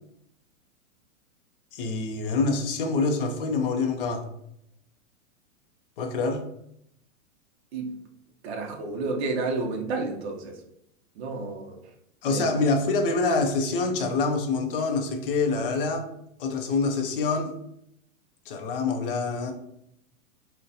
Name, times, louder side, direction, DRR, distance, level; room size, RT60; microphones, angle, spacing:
voice 1, 1.7-4.2 6.0-6.4 12.2-16.1 16.4-17.5 18.5-19.5, left 3 dB, 45° left, 3 dB, 0.4 m, -26 dB
voice 2, 8.4-10.6 11.2-11.8 12.3-12.4, right 3 dB, 50° right, 2 dB, 0.6 m, -30 dB
3.8 x 2.1 x 2.6 m, 0.76 s
supercardioid pair, 165°, 42 cm